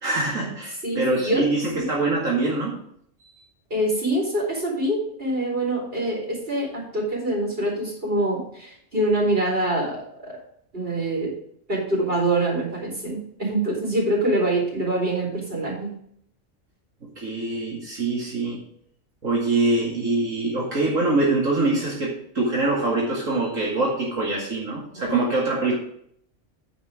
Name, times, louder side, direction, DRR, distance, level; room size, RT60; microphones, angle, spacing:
voice 1, 0.0-2.8 3.3-3.4 17.2-18.6 19.2-25.7, right 2 dB, 80° right, -4 dB, 2.7 m, -24 dB
voice 2, 0.8-1.4 1.7-1.8 3.7-10.3 10.7-11.3 11.7-15.9 25.0-25.2, right 1 dB, 45° right, -2 dB, 4.5 m, -25 dB
9.5 x 8.2 x 3.6 m, 0.66 s
omnidirectional pair, 1.3 m